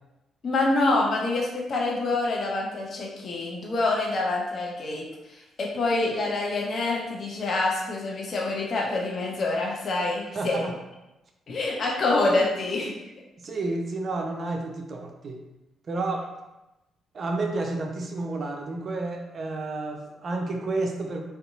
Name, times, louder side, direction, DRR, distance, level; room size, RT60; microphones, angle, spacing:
voice 1, 0.4-5.0 5.3-10.7 11.5-12.9, left 2 dB, 45° left, -2 dB, 0.6 m, -26 dB
voice 2, 10.3-10.7 13.4-15.4 15.9-16.3 17.1-21.2, right 2 dB, 45° right, 2 dB, 0.4 m, -30 dB
2.6 x 2.3 x 2.6 m, 0.99 s
figure-of-eight pair, 40°, 0 cm